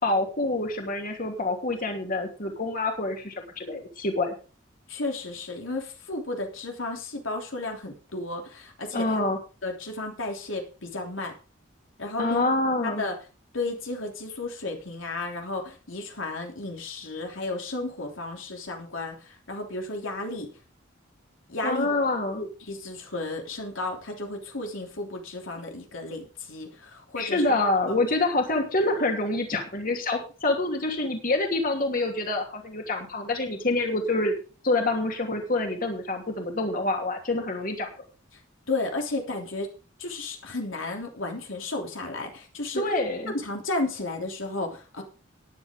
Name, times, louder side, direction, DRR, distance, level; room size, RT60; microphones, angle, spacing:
voice 1, 0.0-4.3 8.9-9.4 12.2-13.0 21.6-22.4 27.2-34.4 34.6-37.9 42.7-43.3, left 2 dB, 45° left, 3 dB, 2.9 m, -26 dB
voice 2, 4.9-9.2 9.6-11.3 12.0-12.4 12.8-13.1 13.5-20.5 21.5-22.0 22.4-27.4 27.9-28.0 38.7-39.7 40.0-42.8 43.3-45.0, left 2 dB, 85° left, 2 dB, 3.2 m, -33 dB
14.0 x 10.5 x 3.7 m, 0.35 s
head